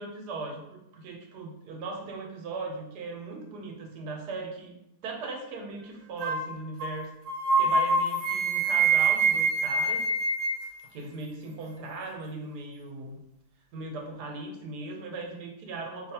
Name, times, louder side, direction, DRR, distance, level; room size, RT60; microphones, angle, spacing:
voice 1, 0.0-4.8 5.0-7.1 7.6-10.0 10.9-13.2 13.7-16.1, right 3 dB, 85° right, 2 dB, 1.2 m, -38 dB
sound 1, 6.2-6.5 6.8-7.0 7.3-10.6, right 3 dB, 60° right, 0.9 m, -25 dB
2.6 x 2.6 x 4.1 m, 0.82 s
omnidirectional pair, 1.7 m